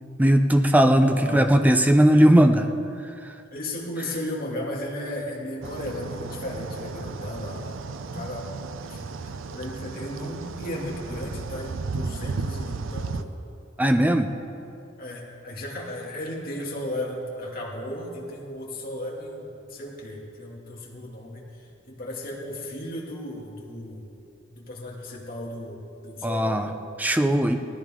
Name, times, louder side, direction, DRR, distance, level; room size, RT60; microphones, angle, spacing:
voice 1, 0.2-2.7 13.8-14.3 26.2-26.7 27.0-27.6, right 1 dB, 10° right, 6 dB, 0.6 m, -18 dB
voice 2, 0.8-1.5 3.5-7.8 8.1-8.5 8.8-13.4 15.0-24.1 24.5-26.7, left 1 dB, 50° left, -3 dB, 2.4 m, -35 dB
sound 1, 5.6-13.2, right 4 dB, 85° right, 0.5 m, -34 dB
19.5 x 13.5 x 3.7 m, 2.6 s
head